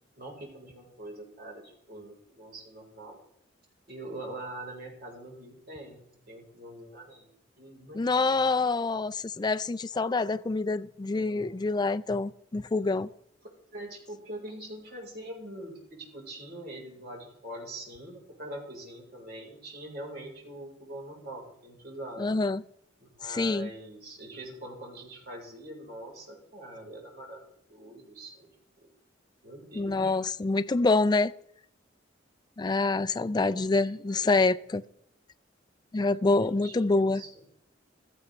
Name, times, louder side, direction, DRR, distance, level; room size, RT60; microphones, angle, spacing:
voice 1, 0.2-3.2 3.9-8.4 11.1-11.6 13.7-22.4 23.0-27.4 27.7-28.5 28.8-28.9 29.4-30.2 33.2-34.3 36.0-37.3, right 1 dB, 55° right, 4.3 m, -43 dB
voice 2, 7.9-13.1 22.2-22.6 23.3-23.7 29.8-31.3 32.6-34.8 35.9-37.2, left 3 dB, 20° left, 0.4 m, -26 dB
15.5 x 14.0 x 3.3 m
head